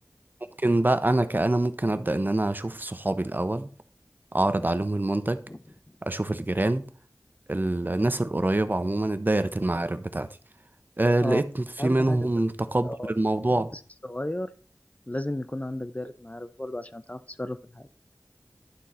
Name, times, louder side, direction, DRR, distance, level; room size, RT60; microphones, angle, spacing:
voice 1, 0.6-3.7 4.3-5.4 6.0-6.8 7.5-10.3 11.0-13.7, right 2 dB, 35° right, 0.6 m, -25 dB
voice 2, 11.8-12.2 12.8-13.1 13.7-14.5 15.1-17.9, left 1 dB, 25° left, 0.5 m, -34 dB
11.5 x 3.8 x 4.2 m
wide cardioid pair, 50°, 6 cm